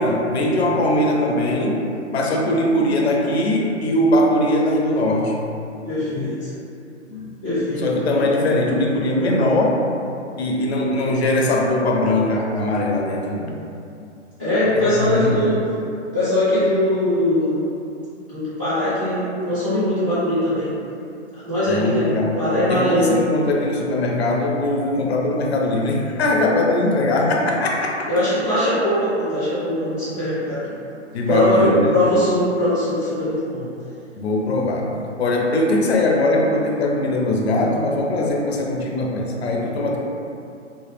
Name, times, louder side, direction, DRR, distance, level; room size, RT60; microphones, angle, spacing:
voice 1, 0.0-1.8 2.1-5.3 7.8-9.8 10.4-13.5 14.8-15.4 21.7-22.4 22.7-28.1 31.1-31.9 34.2-34.9 35.2-40.0, left 1 dB, 60° left, -1 dB, 0.5 m, -20 dB
voice 2, 5.8-6.5 7.1-7.8 8.1-8.3 14.4-15.6 16.1-17.6 18.3-20.7 21.4-22.1 22.4-23.1 28.1-30.7 31.3-33.6, left 1 dB, 10° right, -19 dB, 0.3 m, -21 dB
2.0 x 2.0 x 3.2 m, 2.6 s
figure-of-eight pair, 125°, 37 cm